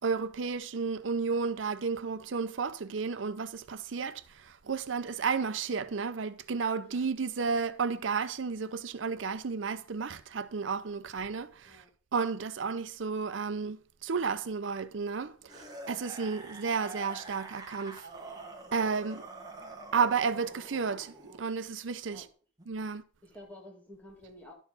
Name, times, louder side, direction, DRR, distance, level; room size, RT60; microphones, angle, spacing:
voice 1, 0.0-11.8 12.1-18.1 18.7-19.3 19.9-22.3 22.7-23.0, right 5 dB, 80° right, 0.6 m, -32 dB
sound 1, 15.5-21.4 22.6-22.7, right 2 dB, 20° right, 1.3 m, -46 dB
voice 2, 23.2-24.5, left 1 dB, 10° left, 2.4 m, -51 dB
11.5 x 4.6 x 5.5 m
head